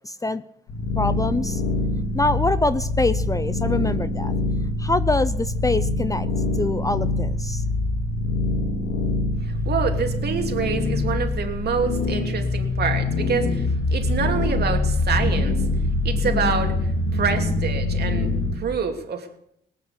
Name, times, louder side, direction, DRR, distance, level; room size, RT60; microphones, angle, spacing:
voice 1, 0.0-0.4 1.0-1.6 2.1-4.3 4.8-6.3 6.5-7.6, left 2 dB, 15° left, 14 dB, 0.6 m, -24 dB
sound 1, 0.7-18.6, left 2 dB, 80° left, 3.4 m, -24 dB
voice 2, 9.4-15.7 16.0-19.4, right 6 dB, 55° right, 4 dB, 2.8 m, -27 dB
18.5 x 9.2 x 8.4 m, 0.74 s
cardioid pair, 90°, 20 cm